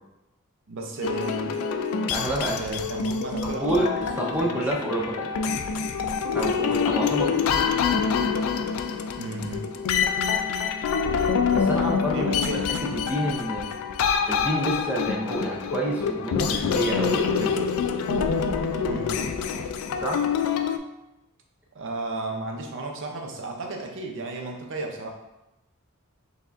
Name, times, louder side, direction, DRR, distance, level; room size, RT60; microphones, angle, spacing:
voice 1, 0.7-1.6 2.6-3.8 4.3-4.5 7.2-7.5 9.2-9.7 12.1-12.6 18.9-19.1 21.7-25.1, right 2 dB, 60° right, 2 dB, 0.6 m, -33 dB
sound 1, 1.0-20.8, left 6 dB, 70° left, 0.3 m, -26 dB
voice 2, 2.1-2.6 3.4-5.3 6.3-7.5 11.5-12.3 12.9-13.7 14.3-17.6 20.0-20.2, right 1 dB, 5° right, -3 dB, 0.5 m, -28 dB
4.7 x 3.4 x 2.5 m, 0.93 s
head